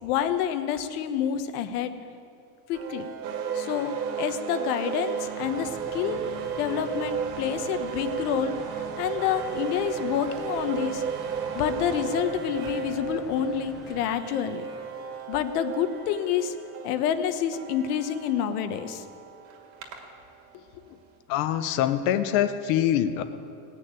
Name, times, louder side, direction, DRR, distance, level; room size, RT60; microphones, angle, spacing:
voice 1, 0.0-1.9 2.7-3.1 3.5-6.2 6.6-11.0 11.5-14.6 15.3-16.6 16.8-19.0, left 9 dB, 85° left, 9 dB, 1.2 m, -28 dB
sound 1, 2.7-20.7, right 5 dB, 60° right, 2.4 m, -38 dB
sound 2, 3.2-12.2, right 8 dB, 85° right, 1.2 m, -33 dB
sound 3, 5.4-14.0, equal, ahead, 0.4 m, -46 dB
voice 2, 20.5-21.0 21.3-23.2, left 11 dB, 45° left, 11 dB, 0.7 m, -25 dB
19.0 x 6.7 x 9.0 m, 2.5 s
cardioid pair, 180°, 44 cm